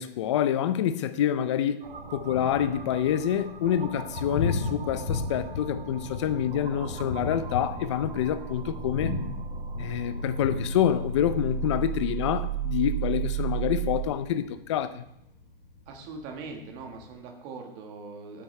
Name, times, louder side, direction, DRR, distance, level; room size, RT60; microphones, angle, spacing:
voice 1, 0.0-1.9 2.1-9.1 9.8-15.0, left 10 dB, 30° left, 0.5 m, -27 dB
Thunder, 1.8-17.1, left 3 dB, 55° left, 2.7 m, -37 dB
sound 1, 1.8-14.1, right 7 dB, 65° right, 1.2 m, -35 dB
voice 2, 15.9-18.4, right 4 dB, 25° right, 1.5 m, -41 dB
13.0 x 8.5 x 3.3 m
hypercardioid pair, 160°, 29 cm